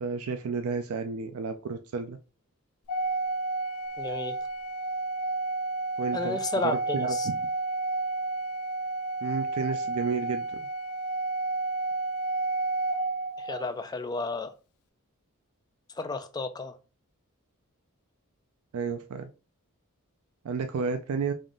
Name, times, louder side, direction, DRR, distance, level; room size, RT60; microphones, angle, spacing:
voice 1, 0.0-2.2 6.0-6.4 6.6-7.4 9.2-10.6 18.7-19.3 20.4-21.3, right 5 dB, 75° right, 0.4 m, -31 dB
Organ, 2.9-13.7, right 2 dB, 75° left, 0.4 m, -31 dB
voice 2, 4.0-4.4 6.1-7.3 13.4-14.5 15.9-16.8, left 3 dB, 20° left, 0.3 m, -32 dB
3.5 x 2.5 x 3.7 m
head